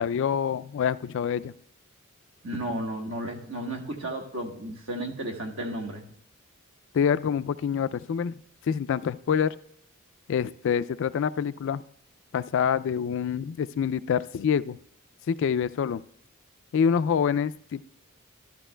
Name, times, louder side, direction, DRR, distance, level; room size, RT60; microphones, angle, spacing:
voice 1, 0.0-1.5 6.9-8.4 8.7-9.5 10.3-11.8 12.3-14.8 15.3-16.0 16.7-17.8, left 7 dB, 60° left, 15 dB, 0.3 m, -26 dB
voice 2, 2.4-6.1, right 1 dB, 65° right, 2 dB, 1.4 m, -33 dB
13.5 x 12.5 x 2.2 m, 0.73 s
head